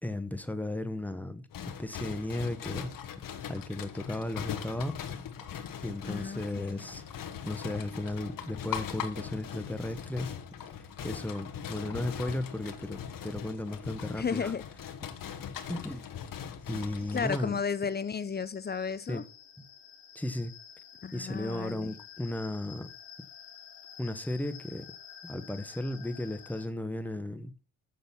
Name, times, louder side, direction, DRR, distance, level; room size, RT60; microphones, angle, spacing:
voice 1, 0.0-1.4 1.8-2.9 3.5-5.0 5.8-7.0 7.4-10.3 11.0-14.5 15.7-16.1 16.7-17.6 19.1-19.2 19.6-19.7 20.1-20.5 21.1-22.9 24.0-24.9 25.2-27.5, left 1 dB, 5° left, 1.1 m, -35 dB
sound 1, 1.5-17.4, left 8 dB, 50° left, 1.2 m, -40 dB
voice 2, 6.0-6.8 14.2-14.6 17.1-19.2 21.0-21.9, left 6 dB, 25° left, 0.6 m, -33 dB
sound 2, 17.0-26.7, left 8 dB, 70° left, 1.5 m, -51 dB
6.7 x 6.4 x 5.6 m
hypercardioid pair, 45°, 42 cm